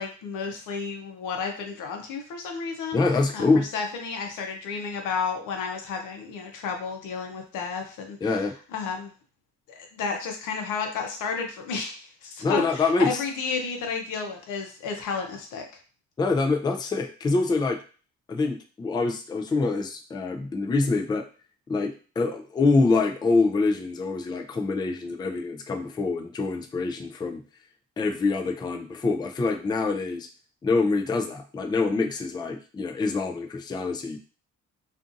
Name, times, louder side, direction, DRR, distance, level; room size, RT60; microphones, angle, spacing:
voice 1, 0.0-3.0 3.3-3.5 3.7-8.4 8.7-9.1 9.7-15.7, left 5 dB, 85° left, 3 dB, 0.7 m, -32 dB
voice 2, 2.9-3.7 8.2-8.5 12.4-13.2 16.2-17.8 18.3-21.2 21.7-27.4 28.0-30.3 30.6-34.2, left 3 dB, 15° left, 4 dB, 0.3 m, -25 dB
2.6 x 2.5 x 2.5 m, 0.38 s
cardioid pair, 90°, 30 cm